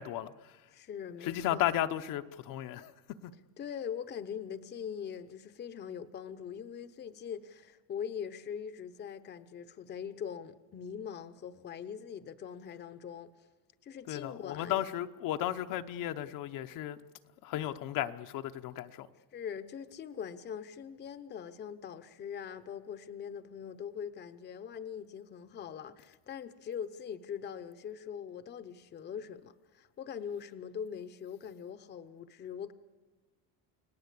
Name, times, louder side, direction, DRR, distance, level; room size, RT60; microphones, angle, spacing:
voice 1, 0.0-0.5 1.2-2.9 14.1-17.0 17.4-19.1, left 12 dB, 55° left, 1.0 m, -34 dB
voice 2, 0.7-1.7 3.6-13.3 13.8-14.8 19.3-32.7, left 8 dB, 25° left, 0.9 m, -42 dB
29.5 x 18.5 x 8.4 m
cardioid pair, 170°, 38 cm